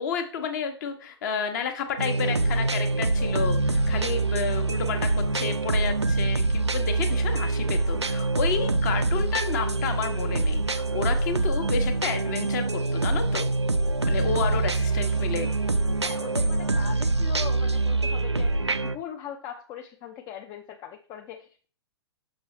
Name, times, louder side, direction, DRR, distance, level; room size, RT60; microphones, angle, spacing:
voice 1, 0.0-13.5 14.0-15.5, left 6 dB, 45° left, 6 dB, 1.1 m, -31 dB
sound 1, 2.0-19.0, right 2 dB, 90° right, 0.4 m, -25 dB
voice 2, 14.2-14.6 16.0-21.7, left 9 dB, 25° left, 4 dB, 0.5 m, -40 dB
6.1 x 5.9 x 3.1 m, 0.41 s
figure-of-eight pair, 110°, 14 cm